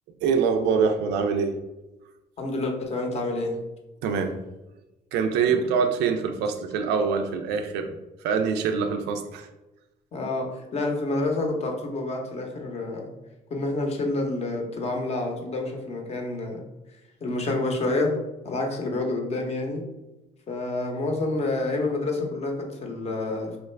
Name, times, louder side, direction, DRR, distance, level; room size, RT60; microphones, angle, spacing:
voice 1, 0.2-1.5 4.0-4.4 5.1-8.0 8.2-9.5, right 6 dB, 85° right, 6 dB, 0.4 m, -24 dB
voice 2, 2.4-3.6 10.1-13.1 13.5-16.7 17.2-18.1 18.4-19.8 20.5-23.6, left 2 dB, 40° left, 2 dB, 0.7 m, -28 dB
3.1 x 2.4 x 3.2 m, 1.0 s
cardioid pair, 110°, 17 cm